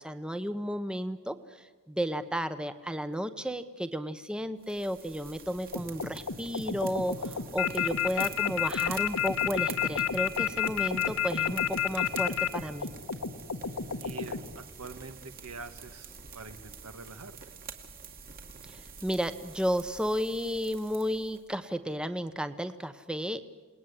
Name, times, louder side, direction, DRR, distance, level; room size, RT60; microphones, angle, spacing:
voice 1, 0.0-12.9 18.7-23.5, equal, 5° right, 10 dB, 0.9 m, -33 dB
sound 1, 4.6-21.4, right 6 dB, 45° right, 2.4 m, -47 dB
sound 2, 5.7-14.5, left 3 dB, 90° left, 1.6 m, -36 dB
sound 3, 7.6-12.5, left 12 dB, 70° left, 1.7 m, -27 dB
voice 2, 14.0-17.4, right 4 dB, 80° right, 8 dB, 1.9 m, -45 dB
28.5 x 20.0 x 9.8 m, 1.3 s
head